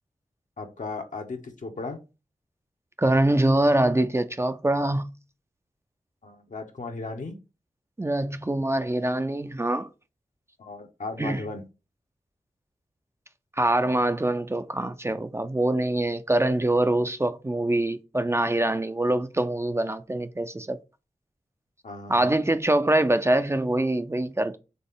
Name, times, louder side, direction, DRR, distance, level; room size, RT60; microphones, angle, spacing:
voice 1, 0.6-2.0 6.2-7.3 10.6-11.6 21.8-22.4, left 3 dB, 65° left, 1.0 m, -36 dB
voice 2, 3.0-5.1 8.0-9.9 11.2-11.4 13.6-20.8 22.1-24.6, right 1 dB, 20° right, 0.5 m, -24 dB
4.1 x 3.3 x 3.7 m
cardioid pair, 45°, 14 cm